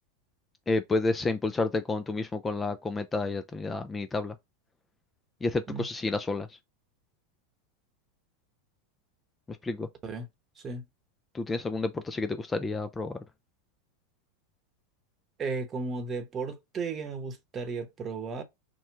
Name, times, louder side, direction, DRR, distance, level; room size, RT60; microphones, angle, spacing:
voice 1, 0.7-4.3 5.4-6.5 9.6-9.9 11.3-13.2, left 3 dB, 15° left, 0.3 m, -30 dB
voice 2, 15.4-18.4, right 4 dB, 30° right, 0.9 m, -34 dB
2.9 x 2.1 x 3.3 m
hypercardioid pair, 105°, 0 cm